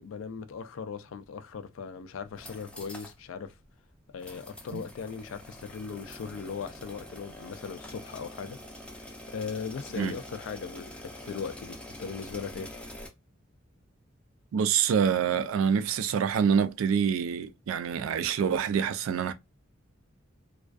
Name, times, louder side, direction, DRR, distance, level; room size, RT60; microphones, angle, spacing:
voice 1, 0.0-3.5 4.1-8.6 9.0-12.7, left 6 dB, 70° left, 0.3 m, -39 dB
sound 1, 2.3-3.2 3.5-3.6 4.2-13.1, left 1 dB, 5° left, 0.4 m, -45 dB
voice 2, 14.5-19.3, right 7 dB, 75° right, 0.3 m, -26 dB
2.3 x 2.3 x 2.3 m
head